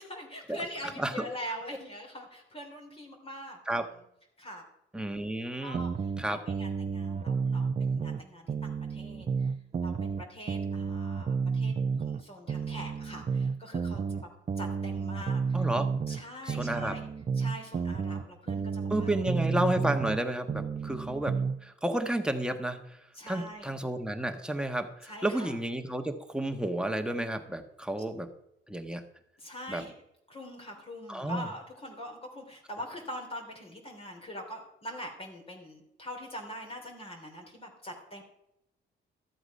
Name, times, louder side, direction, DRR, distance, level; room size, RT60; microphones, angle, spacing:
voice 1, 0.0-3.6 4.4-4.6 5.6-9.5 9.8-11.7 12.0-14.3 14.6-15.7 16.1-17.1 17.3-19.1 23.1-23.8 25.0-25.5 29.4-29.9 30.3-38.2, equal, 30° left, 0 dB, 3.2 m, -43 dB
voice 2, 4.9-5.8 6.2-6.4 15.5-15.9 16.5-17.0 18.9-22.8 23.3-28.3 28.7-29.0 29.7-29.8 31.1-31.5, right 1 dB, 5° right, 6 dB, 1.5 m, -31 dB
sound 1, 5.7-8.2 8.5-12.2 12.5-16.2 16.5-20.2 20.5-21.6, right 5 dB, 30° right, 0.7 m, -31 dB
13.5 x 7.9 x 5.4 m, 0.81 s
cardioid pair, 90°, 20 cm